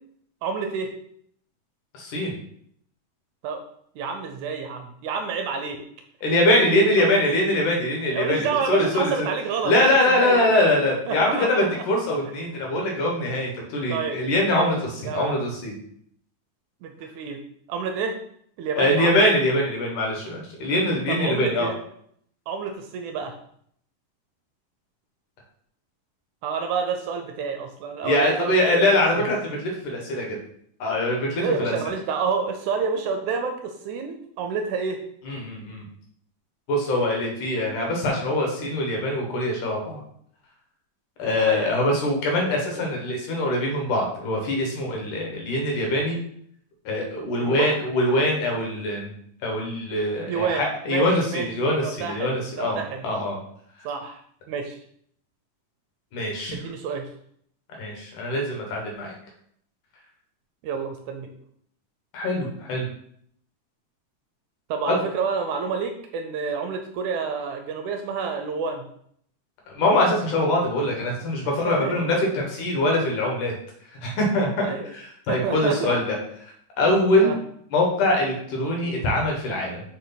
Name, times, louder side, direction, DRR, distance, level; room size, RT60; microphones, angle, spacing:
voice 1, 0.4-0.9 3.4-3.6 4.0-5.8 6.6-7.6 8.1-11.8 13.9-14.7 15.0-15.4 16.8-17.4 17.7-18.2 18.6-19.2 21.1-21.8 22.5-23.3 26.4-28.4 28.7-29.0 31.4-35.0 41.4-41.7 47.4-47.7 50.3-51.5 51.8-53.1 53.8-54.2 54.5-54.8 56.5-57.1 60.6-61.3 64.7-68.9 71.5-72.0 74.6-74.9 75.3-76.0 77.2-77.4, right 5 dB, 75° right, 5 dB, 1.9 m, -29 dB
voice 2, 1.9-2.3 6.2-9.3 9.6-14.8 15.1-15.8 18.8-21.7 28.0-30.4 30.8-31.8 35.3-35.8 36.7-40.0 41.2-46.2 46.9-49.1 49.4-53.4 56.1-56.6 57.8-59.1 62.1-62.8 64.9-65.0 69.7-73.5 74.0-76.2 76.8-77.3 77.7-79.8, left 1 dB, 70° left, 0 dB, 2.9 m, -23 dB
6.4 x 5.2 x 4.0 m, 0.66 s
omnidirectional pair, 3.8 m